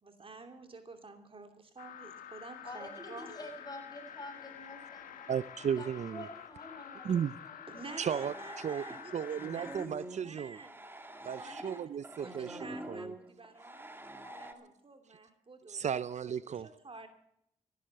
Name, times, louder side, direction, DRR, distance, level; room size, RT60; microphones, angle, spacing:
voice 1, 0.0-3.3 7.7-9.7 10.0-10.8 11.2-13.9 14.4-15.9 16.4-17.1, right 3 dB, 40° right, 2.6 m, -50 dB
sound 1, 1.8-9.9, left 9 dB, 80° left, 1.5 m, -49 dB
voice 2, 2.6-5.4 5.8-7.9 11.4-11.7 14.2-14.7, left 1 dB, 30° left, 6.6 m, -48 dB
voice 3, 5.3-6.2 7.0-7.3 8.0-8.9 9.1-10.6 11.2-13.1 15.7-16.7, right 8 dB, 55° right, 0.5 m, -35 dB
sound 2, 7.8-14.5, right 1 dB, 15° right, 2.1 m, -46 dB
14.5 x 11.5 x 7.6 m
supercardioid pair, 50°, 14 cm